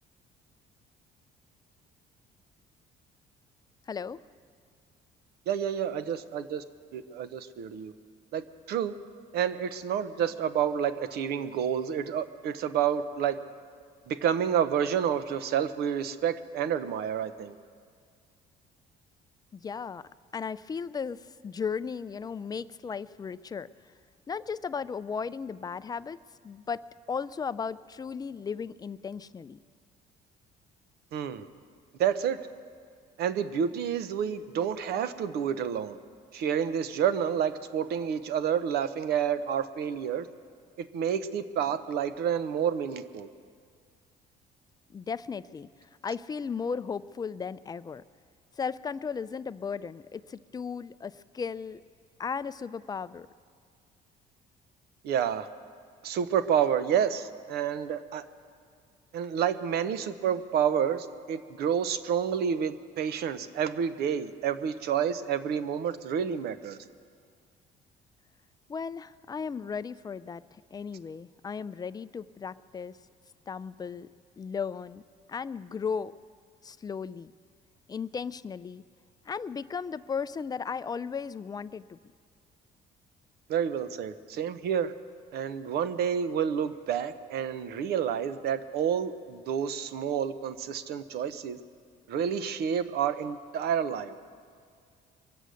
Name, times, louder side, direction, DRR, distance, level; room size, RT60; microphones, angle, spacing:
voice 1, 3.9-4.2 19.5-23.7 24.3-26.2 26.4-29.6 44.9-45.7 46.0-48.0 48.6-51.8 52.2-53.3 68.7-73.0 73.5-74.1 74.4-75.0 75.3-76.1 76.6-77.3 77.9-78.8 79.3-82.0, left 6 dB, 25° left, 16 dB, 0.4 m, -35 dB
voice 2, 5.5-6.6 6.9-7.9 8.3-9.0 9.3-13.4 14.1-17.6 31.1-31.5 32.0-32.4 33.2-36.0 36.3-40.3 40.8-43.3 55.0-55.5 56.0-58.2 59.1-66.8 83.5-84.9 85.3-91.6 92.1-94.1, right 8 dB, 70° right, 13 dB, 0.8 m, -29 dB
23.0 x 8.1 x 6.4 m, 2.1 s
cardioid pair, 110°, 17 cm